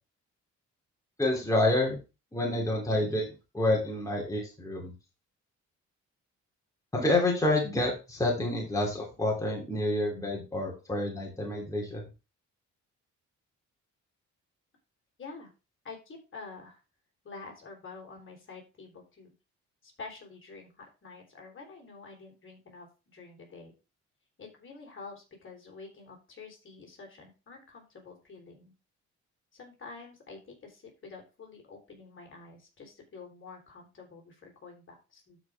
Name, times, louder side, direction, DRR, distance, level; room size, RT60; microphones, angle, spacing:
voice 1, 1.2-2.0 2.3-4.9 6.9-12.0, left 1 dB, 10° left, -2 dB, 3.0 m, -28 dB
voice 2, 15.2-15.5 15.8-16.8 17.2-19.3 19.8-23.7 24.4-28.7 29.5-35.4, left 4 dB, 40° left, 0 dB, 3.8 m, -48 dB
12.0 x 5.1 x 3.5 m, 0.29 s
cardioid pair, 90°, 30 cm